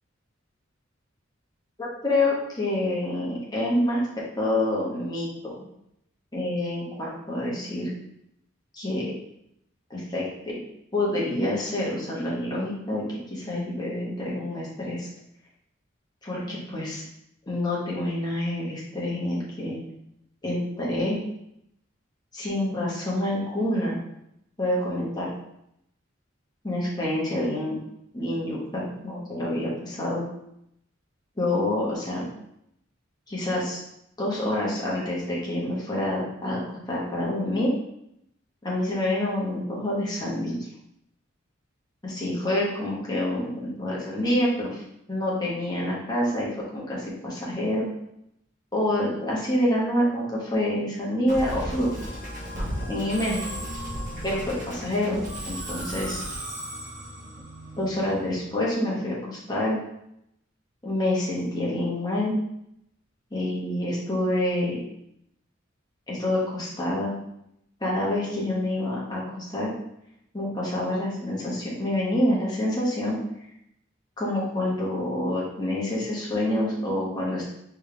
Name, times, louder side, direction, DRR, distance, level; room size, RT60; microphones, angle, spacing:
voice 1, 1.8-4.0 4.4-5.6 6.3-7.9 8.7-9.0 9.9-10.6 10.9-15.1 16.2-17.0 17.5-19.8 20.4-21.2 22.3-24.0 24.6-25.3 26.6-27.8 28.1-30.2 31.4-32.2 33.3-33.8 34.2-37.7 38.6-40.7 42.0-44.8 45.1-47.9 48.7-51.9 52.9-53.4 54.2-56.2 57.8-59.8 60.8-62.4 63.3-64.8 66.1-67.1 67.8-69.7 70.3-73.2 74.2-77.5, left 1 dB, 20° left, -5 dB, 1.3 m, -27 dB
Musical instrument, 51.3-58.6, equal, 40° right, 1.3 m, -35 dB
4.5 x 3.5 x 3.3 m, 0.77 s
head